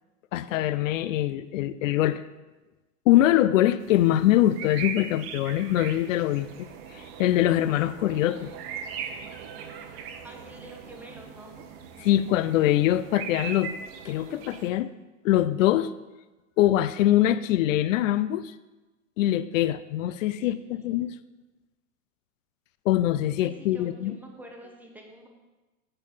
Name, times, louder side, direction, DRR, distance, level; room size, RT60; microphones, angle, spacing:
voice 1, 0.3-2.2 3.1-6.7 7.2-8.5 12.0-13.7 14.0-14.9 15.2-15.9 16.6-18.5 19.2-21.1 22.9-24.2, left 13 dB, 80° left, 14 dB, 0.5 m, -23 dB
sound 1, 3.8-14.7, right 7 dB, 50° right, 1.0 m, -40 dB
voice 2, 10.2-11.7 20.4-20.9 23.4-25.3, right 1 dB, 5° right, 1 dB, 0.8 m, -47 dB
8.7 x 4.5 x 7.1 m, 1.1 s
supercardioid pair, 155°, 39 cm